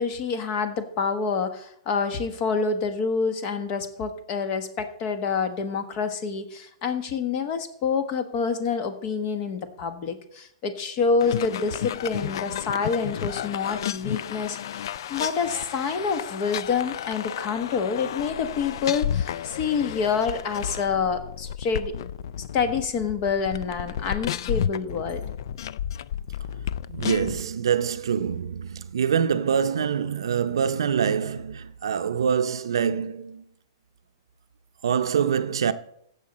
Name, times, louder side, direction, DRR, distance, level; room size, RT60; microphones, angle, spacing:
voice 1, 0.0-14.8 15.1-21.9 22.5-25.2, left 5 dB, 40° left, 1.3 m, -27 dB
sound 1, 11.2-27.4, left 10 dB, 65° left, 0.4 m, -32 dB
voice 2, 26.9-33.4 34.8-35.7, right 7 dB, 80° right, 0.6 m, -25 dB
15.5 x 6.9 x 4.1 m
hypercardioid pair, 135°, 2 cm